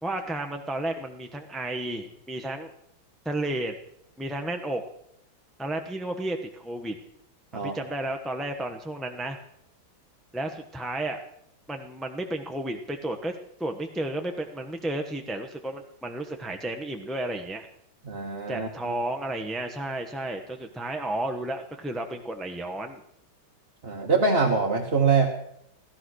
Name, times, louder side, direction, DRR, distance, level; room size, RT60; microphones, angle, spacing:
voice 1, 0.0-2.7 3.2-3.8 4.2-4.8 5.6-7.0 7.5-9.4 10.3-11.2 11.7-13.3 13.6-17.7 18.5-23.0, right 1 dB, ahead, 4 dB, 0.6 m, -32 dB
voice 2, 18.1-18.9 23.8-25.3, right 4 dB, 30° right, -1 dB, 1.5 m, -24 dB
15.5 x 14.5 x 6.4 m, 0.73 s
omnidirectional pair, 2.3 m